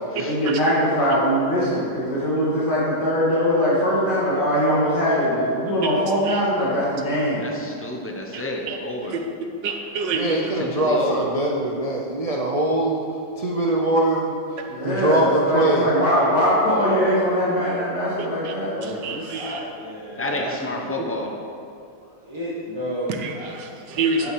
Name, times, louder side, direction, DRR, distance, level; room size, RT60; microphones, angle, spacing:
voice 1, 0.2-7.5 14.7-19.2, equal, 75° left, -8 dB, 2.9 m, -21 dB
voice 2, 5.8-6.4 8.3-9.3 9.6-10.4 18.2-18.5 18.8-19.7 23.2-24.3, right 4 dB, 85° right, 4 dB, 1.6 m, -29 dB
voice 3, 7.4-9.1 10.6-11.2 20.2-21.3, left 2 dB, 15° left, 0 dB, 0.5 m, -29 dB
voice 4, 10.1-13.0 13.4-14.3 14.8-15.9, right 1 dB, 65° right, -2 dB, 0.3 m, -22 dB
voice 5, 15.9-16.3 16.6-17.2 19.3-20.9 22.1-23.5 24.2-24.3, equal, 15° right, -9 dB, 1.3 m, -32 dB
9.0 x 7.8 x 4.9 m, 2.6 s
omnidirectional pair, 1.9 m